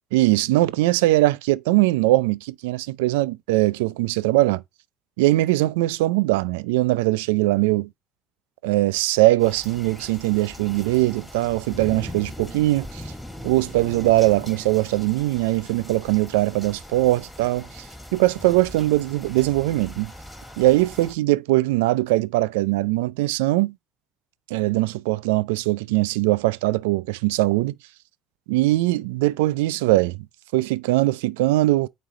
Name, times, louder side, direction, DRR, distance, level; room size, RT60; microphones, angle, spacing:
voice 1, 0.1-4.6 5.2-7.9 8.6-13.0 13.4-17.9 18.1-20.1 20.6-23.7 24.5-27.7 28.5-30.3 30.5-31.9, right 18 dB, 85° right, 0.4 m, -21 dB
sound 1, 9.4-21.1, left 1 dB, 5° left, 3.3 m, -40 dB
9.0 x 3.3 x 3.9 m
supercardioid pair, 75°, 0 cm